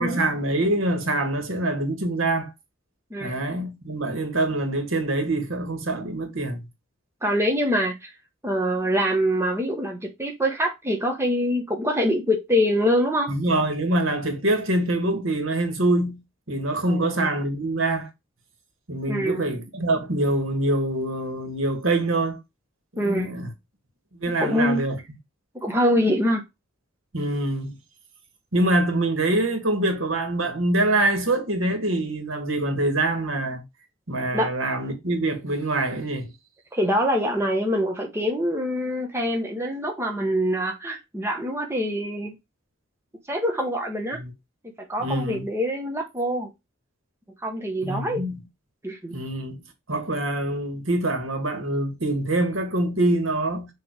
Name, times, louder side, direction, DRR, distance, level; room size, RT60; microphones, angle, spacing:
voice 1, 0.0-2.5 3.2-6.6 13.3-16.2 16.5-18.1 18.9-22.4 23.0-23.5 24.2-25.0 27.1-27.8 28.5-33.6 34.1-36.3 44.1-44.3 45.0-45.5 47.8-48.4 49.1-49.6 49.9-53.7, right 2 dB, 70° right, 1.9 m, -25 dB
voice 2, 7.2-8.1 8.4-13.3 16.8-17.3 19.0-19.4 23.0-23.3 24.4-24.8 25.5-26.4 34.3-34.5 36.7-42.3 43.3-44.2 44.9-46.5 47.4-48.3 48.8-49.1, equal, 10° right, 1.0 m, -24 dB
6.8 x 3.2 x 4.7 m
head